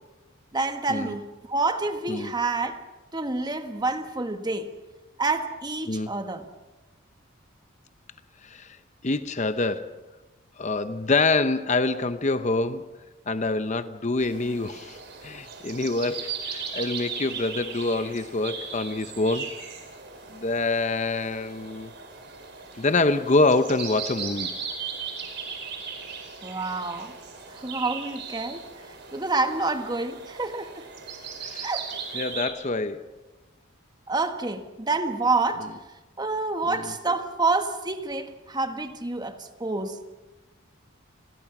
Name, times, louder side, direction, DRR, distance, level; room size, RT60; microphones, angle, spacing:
voice 1, 0.5-2.8 3.1-4.7 5.2-6.5 26.4-27.1 27.5-28.6 29.1-30.8 31.6-31.9 34.1-35.7 36.2-39.3 39.6-40.0, right 3 dB, 20° right, 1.4 m, -28 dB
voice 2, 8.4-8.8 9.0-10.0 10.6-12.8 13.3-15.0 15.2-19.5 20.3-21.9 22.8-24.5 31.4-31.7 32.1-33.0 36.6-36.9, left 3 dB, 35° left, 0.8 m, -26 dB
sound 1, 14.2-32.5, right 6 dB, 55° right, 5.0 m, -38 dB
29.5 x 21.5 x 6.0 m
head